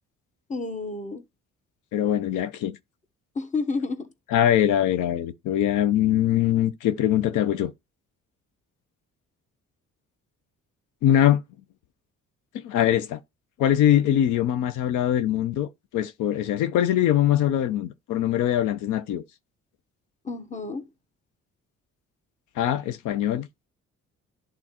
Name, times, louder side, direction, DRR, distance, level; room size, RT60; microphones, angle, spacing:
voice 1, 0.5-1.2 3.3-4.1 20.2-20.8, left 3 dB, 25° left, 1.0 m, -30 dB
voice 2, 1.9-2.7 4.3-7.7 11.0-11.4 12.6-13.2 13.6-19.2 22.6-23.5, left 11 dB, 90° left, 0.7 m, -22 dB
11.0 x 3.7 x 2.9 m
cardioid pair, 90°, 30 cm